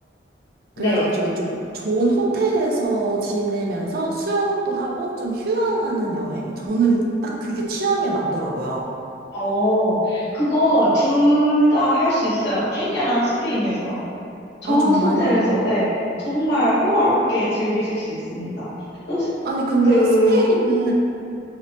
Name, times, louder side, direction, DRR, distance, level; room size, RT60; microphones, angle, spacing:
voice 1, 0.8-8.9 14.6-15.3 19.4-20.9, right 2 dB, 55° right, -1 dB, 0.4 m, -23 dB
voice 2, 9.3-14.1 14.6-15.9 16.2-18.7 19.1-19.3 19.8-20.4, equal, 65° left, -11 dB, 0.8 m, -20 dB
2.8 x 2.1 x 2.7 m, 2.6 s
head